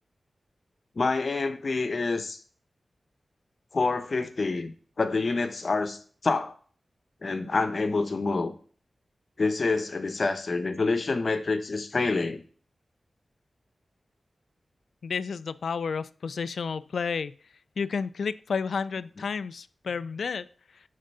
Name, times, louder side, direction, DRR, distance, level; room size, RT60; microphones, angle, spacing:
voice 1, 1.0-2.4 3.7-4.7 5.0-6.5 7.2-8.5 9.4-12.4, left 3 dB, 50° left, 0.8 m, -27 dB
voice 2, 15.0-17.4 17.8-20.5, left 5 dB, 90° left, 0.3 m, -31 dB
8.8 x 3.8 x 5.4 m
wide cardioid pair, 135°, 0 cm